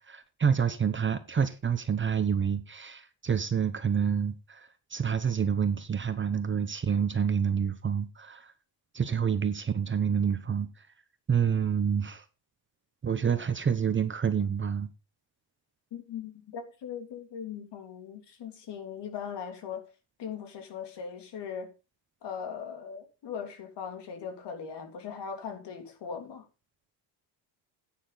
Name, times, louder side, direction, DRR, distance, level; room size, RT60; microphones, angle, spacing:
voice 1, 0.1-8.5 8.9-10.7 11.3-12.2 13.0-14.9, right 7 dB, 25° right, 0.9 m, -28 dB
voice 2, 15.9-19.8 20.2-21.7 22.2-26.5, left 7 dB, 60° left, 3.2 m, -39 dB
11.0 x 9.3 x 4.0 m
cardioid pair, 135°, 46 cm